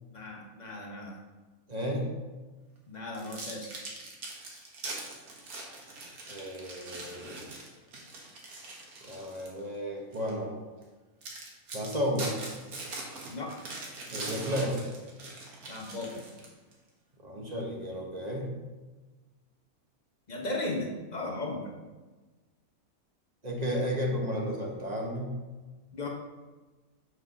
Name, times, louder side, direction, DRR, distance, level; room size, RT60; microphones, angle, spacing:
voice 1, 0.1-1.2 2.9-3.7 13.3-13.5 15.7-16.2 20.3-21.7 25.9-26.1, left 2 dB, 30° left, -1 dB, 1.3 m, -36 dB
voice 2, 1.7-2.1 6.3-7.5 9.0-10.6 11.7-12.3 14.1-14.8 17.2-18.6 23.4-25.4, equal, 30° right, -1 dB, 1.2 m, -33 dB
sound 1, 3.1-9.6 10.1-10.3 10.8-10.9 11.2-16.7, right 2 dB, 80° right, 1.8 m, -42 dB
5.7 x 4.8 x 6.0 m, 1.3 s
omnidirectional pair, 1.6 m